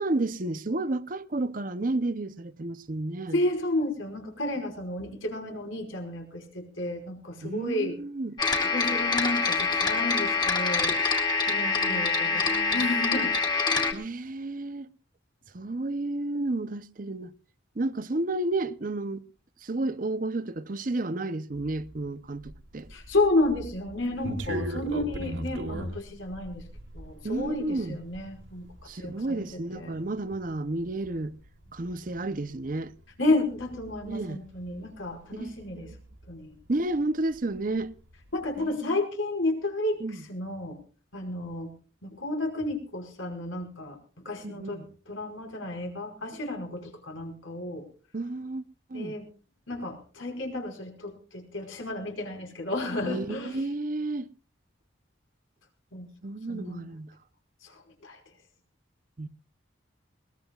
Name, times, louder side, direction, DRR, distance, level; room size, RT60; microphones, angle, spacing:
voice 1, 0.0-3.4 7.4-8.4 11.4-12.8 13.9-14.9 15.5-17.3 17.8-19.2 19.6-22.9 27.2-28.0 28.9-31.3 31.7-32.9 34.0-34.4 35.3-36.0 36.7-37.9 38.6-39.0 40.0-40.2 44.4-44.9 48.1-48.6 48.9-49.2 53.0-54.3 56.2-57.1 59.2-59.3, right 2 dB, 45° right, 0.7 m, -32 dB
voice 2, 3.3-8.0 8.7-11.0 11.4-13.3 22.9-26.6 26.9-28.7 29.0-30.0 33.2-35.9 36.3-36.5 38.3-40.8 41.1-41.7 42.0-47.9 48.9-49.3 49.7-53.6 55.9-56.1 56.5-56.9 57.6-58.2, left 2 dB, 80° left, 5.1 m, -31 dB
sound 1, 8.4-13.9, left 4 dB, 20° left, 2.5 m, -25 dB
sound 2, 21.5-37.1 37.3-38.6, right 1 dB, 75° right, 2.6 m, -41 dB
21.5 x 19.5 x 2.4 m
head